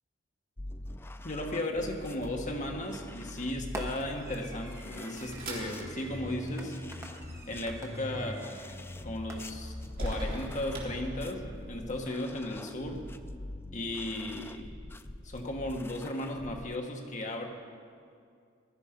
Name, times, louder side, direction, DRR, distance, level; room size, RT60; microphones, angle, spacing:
sound 1, 0.6-16.8, left 1 dB, 10° left, 0.3 m, -44 dB
voice 1, 1.2-6.8 7.5-8.6 9.0-13.0 13.7-14.7 15.2-17.5, left 1 dB, 40° left, 2 dB, 1.4 m, -35 dB
Fireworks, 2.2-2.6 3.7-8.8 9.3-10.6, right 1 dB, 15° right, 1.3 m, -47 dB
sound 2, 4.9-11.7, right 1 dB, 50° right, 3.0 m, -43 dB
16.0 x 11.5 x 5.1 m, 2.3 s
head